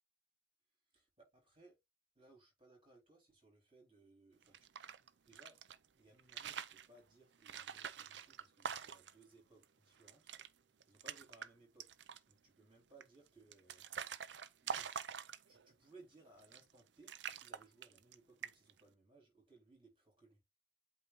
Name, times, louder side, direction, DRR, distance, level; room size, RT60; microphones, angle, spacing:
voice 1, 0.9-1.8 2.1-4.6 5.3-5.6 6.0-10.3 10.8-12.0 12.3-14.2 14.6-14.9 15.5-20.4, right 2 dB, 30° right, 4.3 m, -64 dB
sound 1, 4.4-5.8 6.2-6.9 7.4-9.2 9.6-9.7 10.0-10.5 10.8-11.5 11.8-12.3 13.0-15.7 16.4-16.8 17.1-18.1 18.4-18.8, right 7 dB, 65° right, 0.6 m, -46 dB
8.3 x 2.9 x 4.0 m
head